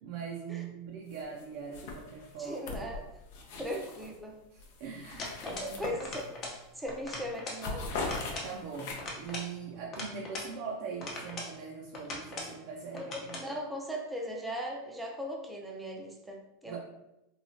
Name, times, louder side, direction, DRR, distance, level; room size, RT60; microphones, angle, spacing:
voice 1, 0.0-2.6 3.5-3.8 4.5-6.0 8.4-13.5 16.6-16.8, right 6 dB, 55° right, -2 dB, 0.5 m, -42 dB
sound 1, 1.1-1.4 1.7-4.2 4.6-6.5 6.8-7.1 7.3-9.3, left 3 dB, 65° left, 0.6 m, -40 dB
voice 2, 2.4-3.0 3.6-4.4 5.4-6.2 6.8-7.9 12.9-16.8, equal, 5° right, 0 dB, 0.5 m, -38 dB
sound 2, 5.2-5.8 6.0-6.6 6.9-7.6 8.0-8.5 9.0-10.5 11.0-11.6 11.9-12.6 13.0-13.5, left 2 dB, 35° left, 0.7 m, -40 dB
3.0 x 2.3 x 2.7 m, 0.91 s
supercardioid pair, 130°, 0 cm